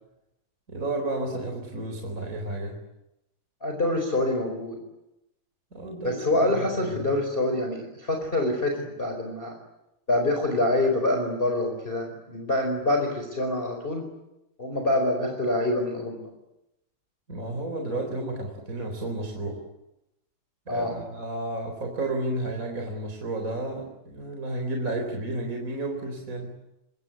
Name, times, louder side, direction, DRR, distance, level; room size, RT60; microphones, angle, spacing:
voice 1, 0.7-2.8 5.7-7.1 17.3-19.6 20.7-26.6, right 2 dB, 25° right, 2 dB, 4.6 m, -32 dB
voice 2, 3.6-4.8 6.0-9.5 10.1-14.0 14.6-16.2 20.7-21.0, left 1 dB, 15° left, 3 dB, 4.7 m, -26 dB
28.0 x 25.0 x 8.5 m, 0.91 s
omnidirectional pair, 3.4 m